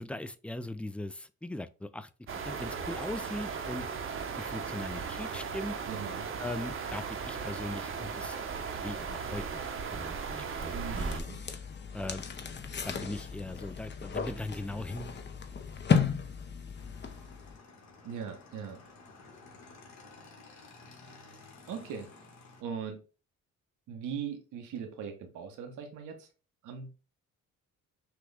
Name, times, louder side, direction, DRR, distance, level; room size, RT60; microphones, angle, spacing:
voice 1, 0.0-2.1 2.4-3.9 4.4-5.8 6.4-8.4 8.8-11.2 11.9-12.3 12.9-15.2, left 1 dB, 5° left, 0.3 m, -39 dB
sound 1, 2.3-11.2, right 5 dB, 45° right, 0.8 m, -37 dB
voice 2, 5.9-6.3 10.7-11.4 18.0-18.8 21.7-22.1 22.6-23.0 23.9-26.3 26.6-27.0, right 7 dB, 85° right, 1.1 m, -40 dB
sound 2, 11.0-17.6, left 6 dB, 35° left, 0.7 m, -34 dB
Motorcycle / Engine, 16.8-22.6, left 3 dB, 65° left, 1.7 m, -53 dB
6.0 x 2.3 x 3.4 m
cardioid pair, 90°, 30 cm